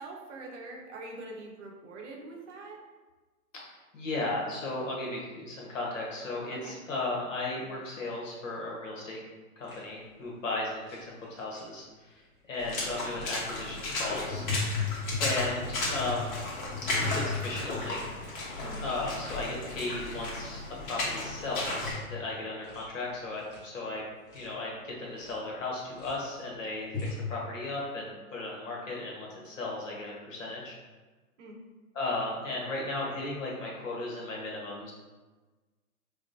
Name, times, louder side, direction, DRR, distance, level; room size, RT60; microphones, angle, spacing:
voice 1, 0.0-2.8 6.5-6.8 18.6-18.8 31.4-31.6, right 2 dB, 55° right, 0 dB, 0.8 m, -44 dB
voice 2, 3.5-9.2 9.6-14.5 15.2-16.4 17.1-18.1 18.8-24.0 24.3-30.8 31.9-34.9, left 2 dB, 60° left, -3 dB, 1.1 m, -35 dB
sound 1, 9.6-9.8 10.8-11.0 11.2-11.6 12.5-12.8 13.2-13.4 14.3-18.0 18.3-18.7 19.0-19.4 19.8-20.3 20.8-21.0 21.6-22.1 22.4-22.9 23.2-23.6 24.1-24.5 25.2-25.3 25.8-26.1 26.8-27.2, left 4 dB, 10° left, 0.8 m, -36 dB
Water / Splash splatter, 12.6-21.9, left 2 dB, 35° left, 1.0 m, -35 dB
4.6 x 2.1 x 2.5 m, 1.3 s
hypercardioid pair, 130°, 44 cm